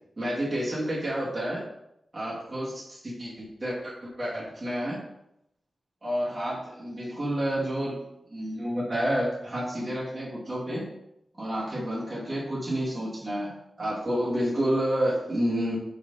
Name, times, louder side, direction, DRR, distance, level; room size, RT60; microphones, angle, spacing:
voice 1, 0.2-1.6 2.1-5.0 6.0-8.0 8.3-10.9 11.4-13.5 13.8-15.8, equal, 20° right, -8 dB, 1.9 m, -29 dB
4.8 x 3.9 x 5.3 m, 0.82 s
wide cardioid pair, 135°, 0 cm